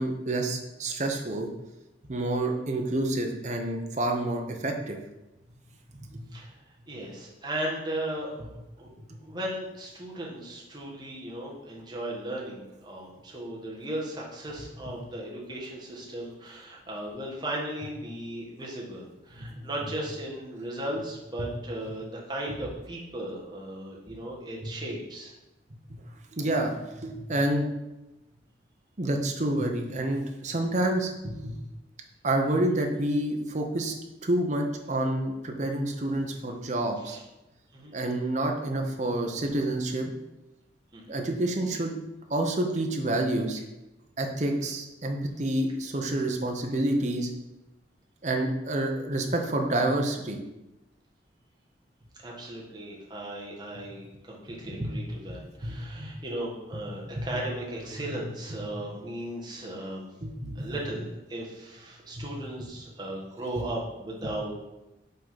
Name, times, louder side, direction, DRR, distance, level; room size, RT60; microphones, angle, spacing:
voice 1, 0.0-1.5 2.1-5.0 5.9-6.2 19.4-19.7 21.4-21.5 24.6-24.7 25.9-26.0 26.3-27.7 29.0-31.6 32.2-33.9 34.2-37.2 37.9-40.1 41.1-41.9 42.3-43.6 44.2-47.3 48.2-50.4 54.8-54.9 55.3-56.1 57.1-57.4 57.9-58.0 58.5-58.6 60.2-60.7 62.2-62.3 64.2-64.3, right 1 dB, 40° right, 2 dB, 0.8 m, -28 dB
voice 2, 6.9-8.5 8.8-8.9 9.2-25.3 37.0-37.2 37.7-37.9 40.9-41.1 52.2-60.1 60.5-64.5, right 1 dB, 25° right, -4 dB, 1.4 m, -36 dB
5.5 x 3.8 x 5.7 m, 0.98 s
head